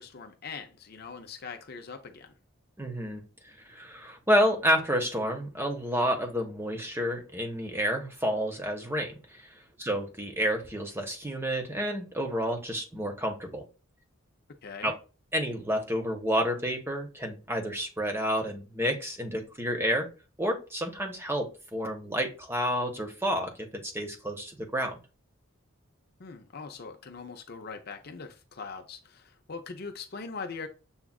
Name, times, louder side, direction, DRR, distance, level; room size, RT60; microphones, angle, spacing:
voice 1, 0.0-2.3 14.6-14.9 26.2-30.7, left 5 dB, 45° left, 0.5 m, -41 dB
voice 2, 2.8-13.6 14.8-14.9 15.3-20.1 20.4-25.0, equal, 10° right, 0.7 m, -30 dB
7.0 x 2.4 x 2.3 m
head